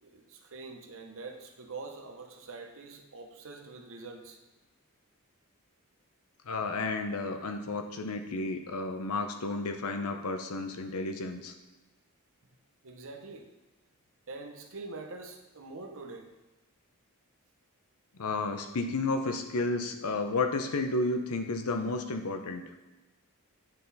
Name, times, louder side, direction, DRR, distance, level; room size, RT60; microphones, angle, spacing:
voice 1, 0.0-4.4 12.8-13.5 14.3-16.3, right 3 dB, 60° right, 4 dB, 0.8 m, -44 dB
voice 2, 6.5-11.5 18.1-22.6, left 3 dB, 75° left, 7 dB, 0.7 m, -32 dB
9.1 x 4.0 x 4.0 m, 1.1 s
head